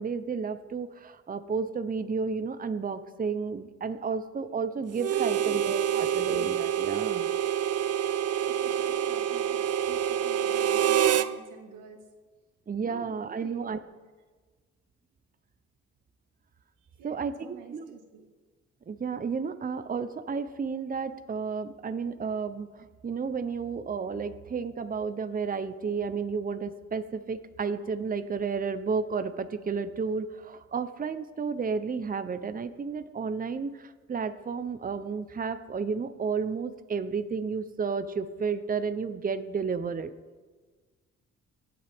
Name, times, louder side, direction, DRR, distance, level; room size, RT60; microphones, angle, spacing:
voice 1, 0.0-7.3 12.7-13.8 17.0-17.9 18.9-40.1, right 5 dB, 30° right, 10 dB, 0.8 m, -32 dB
voice 2, 4.9-5.6 5.9-6.0 8.4-12.0 12.8-13.6 16.8-18.3, right 5 dB, 85° right, 3 dB, 2.0 m, -48 dB
Harmonica, 5.0-11.3, right 10 dB, 55° right, 0.6 m, -27 dB
24.0 x 8.6 x 3.6 m, 1.4 s
cardioid pair, 90°, 30 cm